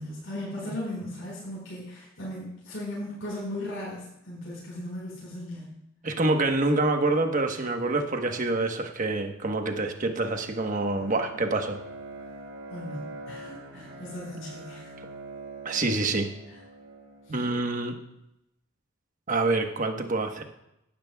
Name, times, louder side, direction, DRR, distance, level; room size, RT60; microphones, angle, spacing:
voice 1, 0.0-5.8 12.7-14.9 16.5-16.6 17.2-17.4, left 1 dB, 75° left, -6 dB, 4.9 m, -37 dB
voice 2, 6.0-11.8 15.6-16.3 17.3-17.9 19.3-20.4, right 2 dB, 40° right, 4 dB, 1.2 m, -26 dB
Bowed string instrument, 9.6-17.5, right 2 dB, 85° right, 4.2 m, -44 dB
16.5 x 12.5 x 2.4 m, 0.82 s
head